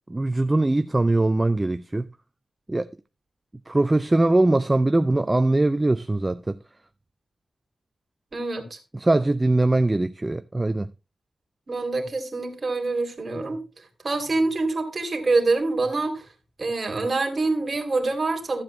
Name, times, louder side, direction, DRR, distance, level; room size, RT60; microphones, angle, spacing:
voice 1, 0.1-2.1 2.7-2.9 3.7-6.6 8.9-10.9, right 2 dB, 20° right, 0.4 m, -21 dB
voice 2, 8.3-8.8 11.7-13.6 14.0-16.3 16.6-18.6, right 3 dB, 35° right, 2.4 m, -25 dB
13.5 x 7.5 x 3.1 m
wide cardioid pair, 115°, 0 cm